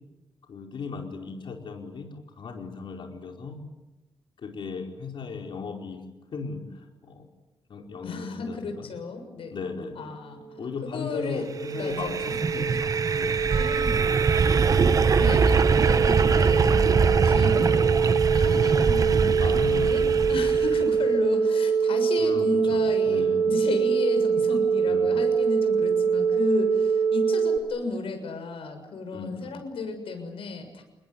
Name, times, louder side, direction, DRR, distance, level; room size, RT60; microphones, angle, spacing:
voice 1, 0.5-3.6 4.4-6.0 6.3-7.3 7.7-8.9 9.5-10.1 10.6-13.4 14.8-15.1 18.5-18.8 19.4-20.3 22.2-23.5 24.8-25.2 29.1-29.5, left 5 dB, 60° left, 2 dB, 5.0 m, -36 dB
voice 2, 8.0-9.6 9.9-11.4 11.7-12.8 13.6-14.4 14.8-20.0 20.3-30.8, left 3 dB, 80° left, 6 dB, 6.7 m, -34 dB
sound 1, 10.6-27.6, right 6 dB, 55° right, 2.5 m, -24 dB
sound 2, 11.7-20.9, right 5 dB, 40° right, 1.0 m, -23 dB
Percussion, 13.5-18.7, right 4 dB, 80° right, 3.7 m, -44 dB
28.5 x 21.0 x 9.6 m, 1.0 s
wide cardioid pair, 150°, 9 cm